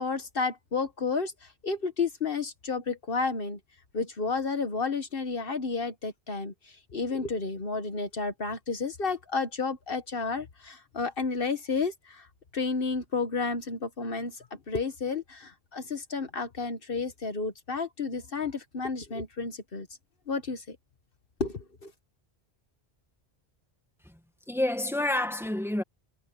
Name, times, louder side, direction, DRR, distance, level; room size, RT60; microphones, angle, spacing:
voice 1, 0.0-3.6 3.9-6.5 6.9-12.3 12.5-14.4 14.7-19.9 20.3-20.8 21.4-21.9, left 4 dB, 55° left, 1.4 m, -31 dB
voice 2, 24.5-25.8, left 1 dB, ahead, 1.6 m, -28 dB
omnidirectional pair, 1.1 m